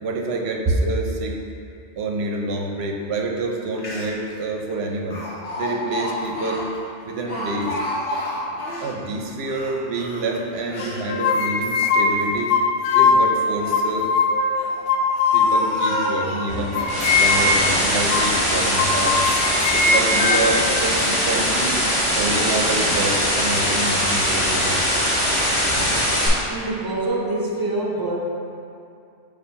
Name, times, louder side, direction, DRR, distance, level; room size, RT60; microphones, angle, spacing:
voice 1, 0.0-1.4 2.0-5.2 5.6-6.7 7.0-7.8 8.8-12.6 12.9-14.1 15.3-16.8 17.1-19.2 19.7-21.8 22.1-24.8, right 2 dB, 65° right, 2 dB, 0.9 m, -27 dB
Speech, 3.5-3.6 3.8-4.3 5.1-8.9 9.4-11.0 11.6-12.4 13.3-13.9 14.6-16.6 17.2-18.0 18.4-18.9 19.5-19.6 20.1-20.4 20.9-21.1, left 1 dB, 55° left, 1.0 m, -32 dB
sound 1, 10.8-13.3 13.7-14.6 14.9-16.2 16.7-17.6 18.1-18.3 18.8-20.7, left 4 dB, 90° left, 0.9 m, -20 dB
sound 2, 16.5-26.3, equal, 25° left, 1.5 m, -21 dB
voice 2, 26.5-28.2, right 2 dB, 20° right, -3 dB, 0.7 m, -25 dB
6.8 x 2.5 x 5.6 m, 2.5 s
omnidirectional pair, 1.2 m